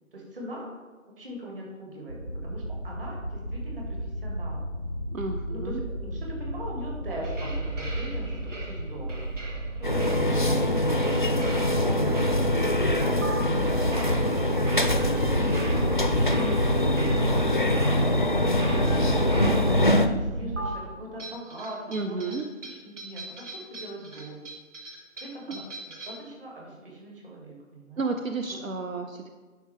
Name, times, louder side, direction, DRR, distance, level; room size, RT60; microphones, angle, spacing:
voice 1, 0.1-0.7 1.2-4.6 5.5-9.3 9.9-14.4 14.9-15.4 15.9-24.5 25.2-28.1 28.5-28.6, right 1 dB, 45° right, -2 dB, 2.4 m, -41 dB
sound 1, 2.1-20.7, right 1 dB, 30° right, 0.5 m, -33 dB
voice 2, 5.1-5.8 21.9-22.4 25.5-25.6 28.0-29.3, right 3 dB, 85° right, 5 dB, 0.7 m, -31 dB
sound 2, 7.2-12.7 13.2-13.3 13.9-20.0 20.6-20.7 21.2-26.3, right 2 dB, 65° right, 1.9 m, -42 dB
sound 3, 9.8-20.1, left 1 dB, 40° left, 0.4 m, -24 dB
10.5 x 5.4 x 3.6 m, 1.4 s
figure-of-eight pair, 150°, 39 cm